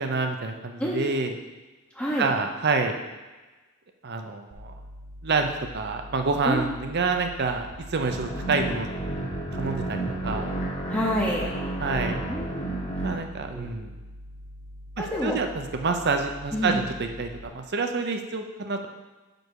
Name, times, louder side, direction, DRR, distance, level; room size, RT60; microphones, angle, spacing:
voice 1, 0.0-1.4 2.2-2.9 4.0-4.7 5.2-8.9 9.5-10.0 10.2-10.5 11.8-12.2 13.0-13.9 15.0-18.9, right 4 dB, 50° right, 5 dB, 0.6 m, -27 dB
voice 2, 0.8-1.2 1.9-2.3 6.4-6.8 10.9-11.4 11.8-11.9 12.3-12.8 13.5-13.7 15.0-15.4 16.5-16.8, equal, 5° left, -6 dB, 0.7 m, -28 dB
sound 1, 4.5-17.4, equal, 80° right, 1.3 m, -44 dB
sound 2, 8.1-13.2, right 2 dB, 30° left, 1.2 m, -31 dB
6.2 x 5.2 x 4.7 m, 1.2 s
head